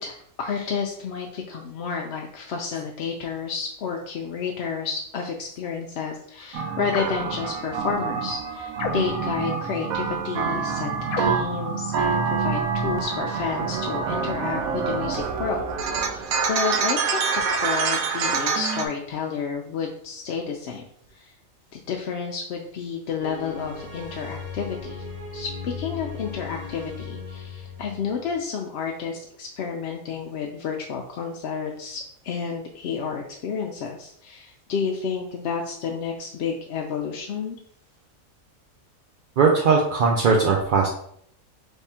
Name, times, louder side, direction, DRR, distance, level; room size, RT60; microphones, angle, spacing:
voice 1, 0.0-10.9 11.2-20.8 21.1-21.3 21.7-25.0 25.3-37.6, left 6 dB, 65° left, 1 dB, 0.7 m, -31 dB
sound 1, 6.5-18.9, right 5 dB, 85° right, 1.1 m, -26 dB
sound 2, 6.9-7.3 8.7-9.3 11.1-11.5, left 6 dB, 90° left, 1.0 m, -32 dB
sound 3, 23.2-28.4, left 4 dB, 30° right, 1.1 m, -37 dB
voice 2, 39.4-40.9, right 5 dB, 55° right, -1 dB, 0.6 m, -19 dB
3.5 x 3.3 x 4.2 m, 0.67 s
omnidirectional pair, 1.4 m